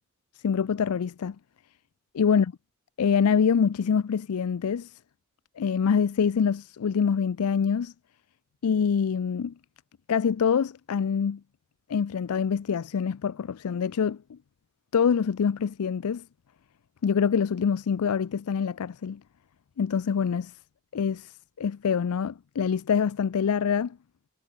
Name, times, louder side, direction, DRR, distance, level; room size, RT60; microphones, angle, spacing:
voice 1, 0.4-1.4 2.1-2.5 3.0-5.0 5.6-7.9 8.6-9.5 10.1-11.4 11.9-14.4 14.9-16.2 17.0-19.2 19.8-20.5 20.9-24.0, left 6 dB, 90° left, 0.4 m, -25 dB
head